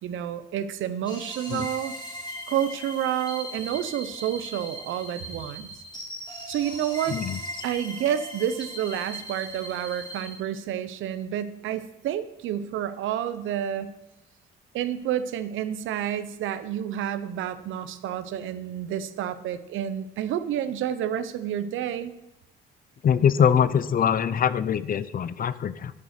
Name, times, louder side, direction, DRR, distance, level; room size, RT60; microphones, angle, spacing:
voice 1, 0.0-1.9 2.5-5.7 6.5-7.2 7.6-13.9 14.7-22.1, right 10 dB, 85° right, 12 dB, 0.8 m, -29 dB
sound 1, 1.0-10.4, equal, 20° left, 3.5 m, -39 dB
voice 2, 23.0-25.9, left 8 dB, 45° left, 16 dB, 0.6 m, -23 dB
11.0 x 6.5 x 6.6 m, 0.91 s
cardioid pair, 90°, 20 cm